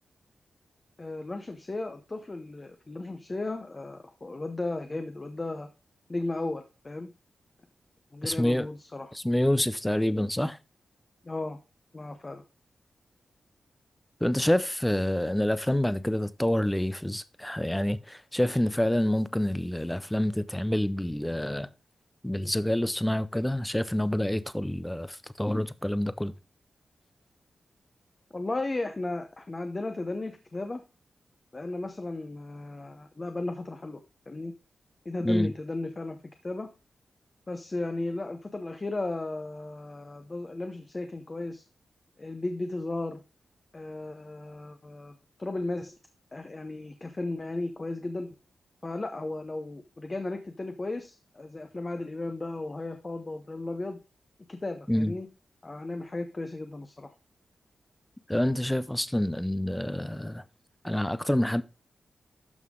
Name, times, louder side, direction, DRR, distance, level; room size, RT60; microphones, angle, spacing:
voice 1, 1.0-5.7 6.1-7.1 8.1-9.1 11.2-11.6 11.9-12.4 28.3-30.8 31.5-34.0 34.3-34.5 35.0-36.2 36.4-36.7 37.5-41.6 42.2-43.2 43.7-45.1 45.4-45.9 46.3-48.3 48.8-54.0 54.5-55.3 55.6-57.1, left 2 dB, 25° left, 0.8 m, -35 dB
voice 2, 8.2-8.7 9.1-10.6 14.2-21.7 22.2-26.3 35.2-35.5 54.9-55.1 58.3-60.4 60.8-61.6, left 1 dB, 5° left, 0.5 m, -27 dB
12.5 x 5.6 x 3.7 m
wide cardioid pair, 165°, 0 cm